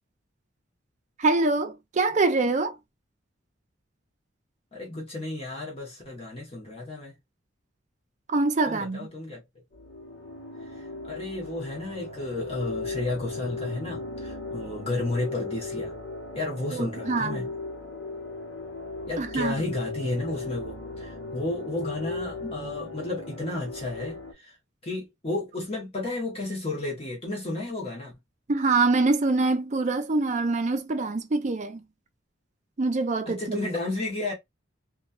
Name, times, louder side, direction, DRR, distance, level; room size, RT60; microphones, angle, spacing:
voice 1, 1.2-2.7 8.3-9.1 16.7-17.5 19.2-19.5 28.5-31.8 32.8-33.6, right 3 dB, 40° right, 0.5 m, -25 dB
voice 2, 4.7-7.2 8.7-9.4 10.7-15.9 16.3-17.5 19.1-24.6 24.8-28.1 33.3-34.3, left 2 dB, 30° left, 0.9 m, -32 dB
sound 1, 9.7-24.3, left 3 dB, 65° left, 0.9 m, -37 dB
3.0 x 2.3 x 2.5 m
head